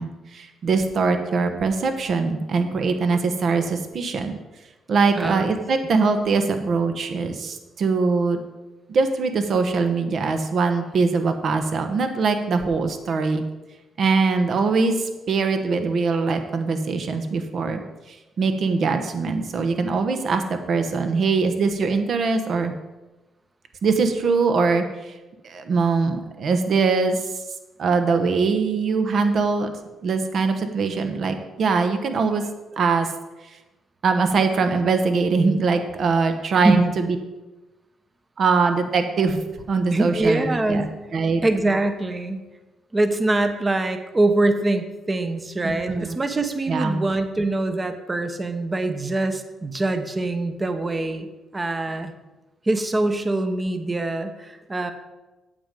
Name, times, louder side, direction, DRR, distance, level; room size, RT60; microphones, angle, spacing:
voice 1, 0.0-4.4 4.9-8.4 8.9-13.4 14.0-17.8 18.1-20.4 20.7-22.7 23.8-25.1 25.4-27.3 27.8-29.7 30.0-32.4 32.8-33.1 33.5-33.6 34.0-37.2 38.4-39.4 39.7-40.9 41.1-41.4 45.6-46.2 46.7-47.0, right 4 dB, 55° right, 7 dB, 1.1 m, -22 dB
voice 2, 5.1-5.5 36.6-36.9 39.9-40.9 41.4-42.4 42.9-51.3 51.5-52.1 52.6-54.9, right 2 dB, 25° right, 8 dB, 1.0 m, -23 dB
8.7 x 7.7 x 5.2 m, 1.1 s
cardioid pair, 90°, 0 cm